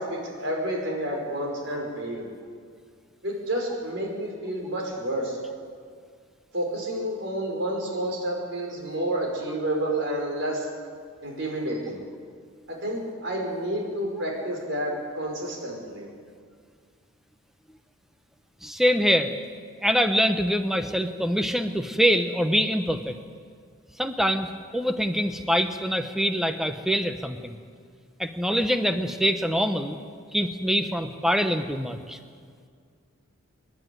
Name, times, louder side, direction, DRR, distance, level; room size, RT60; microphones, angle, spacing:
voice 1, 0.0-2.3 3.2-5.4 6.5-10.7 11.2-12.0 12.7-16.1, right 1 dB, 55° right, 0 dB, 5.1 m, -30 dB
voice 2, 18.6-19.3 19.8-23.2 24.0-27.6 28.2-30.0 30.3-32.2, equal, ahead, 8 dB, 0.9 m, -24 dB
27.5 x 11.5 x 9.3 m, 2.1 s
head